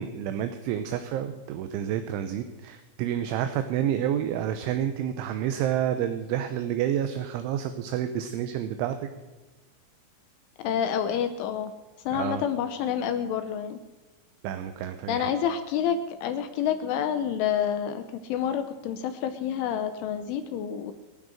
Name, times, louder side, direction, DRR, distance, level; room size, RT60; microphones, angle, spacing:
voice 1, 0.0-9.1 12.1-12.4 14.4-15.3, right 10 dB, 80° right, 8 dB, 3.0 m, -29 dB
voice 2, 10.6-11.7 12.1-13.8 15.1-20.9, left 8 dB, 75° left, 8 dB, 3.2 m, -28 dB
23.5 x 9.3 x 6.4 m, 1.1 s
omnidirectional pair, 5.9 m